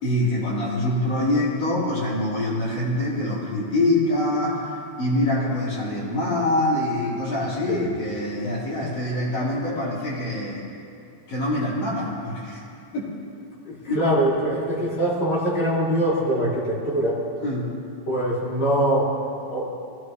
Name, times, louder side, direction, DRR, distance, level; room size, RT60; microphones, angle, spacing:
voice 1, 0.0-4.7 5.0-10.6 11.3-12.6 12.9-13.1 13.9-14.0 17.4-17.7, left 1 dB, 65° left, -9 dB, 5.9 m, -24 dB
voice 2, 13.6-17.2 18.1-19.1 19.5-19.8, right 1 dB, 40° left, -9 dB, 5.8 m, -23 dB
23.5 x 16.5 x 3.2 m, 2.4 s
omnidirectional pair, 3.3 m